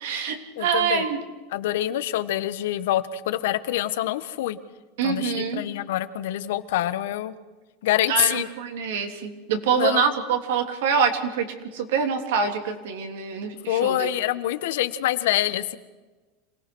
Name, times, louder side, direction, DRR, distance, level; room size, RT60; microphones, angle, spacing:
voice 1, 0.0-1.2 5.0-5.6 8.1-11.5 11.7-14.0, right 6 dB, 80° right, 5 dB, 3.3 m, -25 dB
voice 2, 0.6-1.0 1.5-4.6 5.0-7.3 7.8-8.5 9.8-10.1 13.7-15.8, left 13 dB, 80° left, 12 dB, 1.3 m, -25 dB
27.0 x 18.0 x 6.3 m, 1.2 s
supercardioid pair, 130°, 0 cm